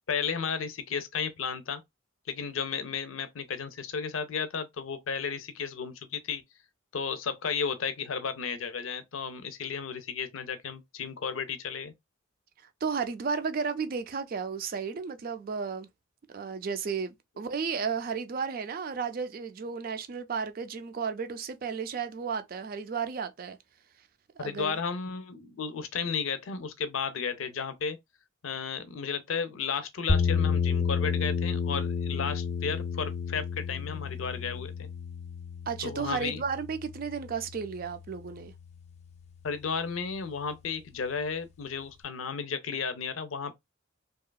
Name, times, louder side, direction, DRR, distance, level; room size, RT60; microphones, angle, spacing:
voice 1, 0.1-1.8 2.3-6.4 6.9-11.9 24.4-28.0 28.4-34.7 35.8-36.4 39.4-43.5, left 6 dB, 85° left, 0.5 m, -33 dB
voice 2, 12.8-15.9 16.3-23.6 24.4-24.8 35.7-38.5, right 5 dB, 45° right, 0.4 m, -33 dB
sound 1, 30.1-38.2, left 5 dB, 35° left, 0.3 m, -31 dB
2.8 x 2.3 x 2.2 m
head